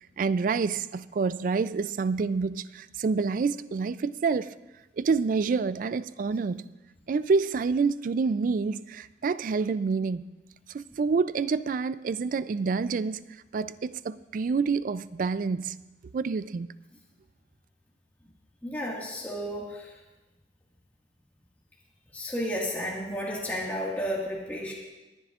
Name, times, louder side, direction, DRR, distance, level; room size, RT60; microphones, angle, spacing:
voice 1, 0.2-4.5 5.0-6.7 7.1-10.2 10.7-13.2 13.5-15.8 16.1-16.7, right 4 dB, 50° right, 0.3 m, -27 dB
voice 2, 18.6-20.0 22.1-24.7, equal, 10° left, 1.7 m, -32 dB
22.5 x 10.5 x 2.4 m
head